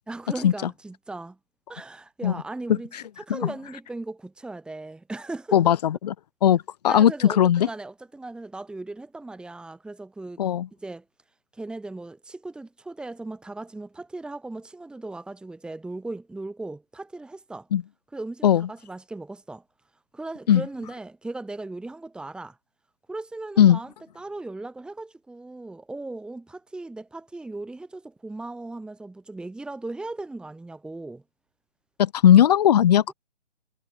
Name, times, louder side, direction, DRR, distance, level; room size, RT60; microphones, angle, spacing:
voice 1, 0.1-1.4 1.7-2.9 3.2-5.7 6.9-10.4 10.8-11.0 11.5-17.7 18.1-19.6 20.1-22.6 23.1-31.2 33.1-33.2, right 2 dB, ahead, 5.3 m, -37 dB
voice 2, 5.5-6.1 6.4-7.7 10.4-10.7 17.7-17.8 18.4-18.7 20.5-20.6 23.6-23.8 32.0-33.1, left 10 dB, 35° left, 2.0 m, -18 dB
figure-of-eight pair, 150°, 36 cm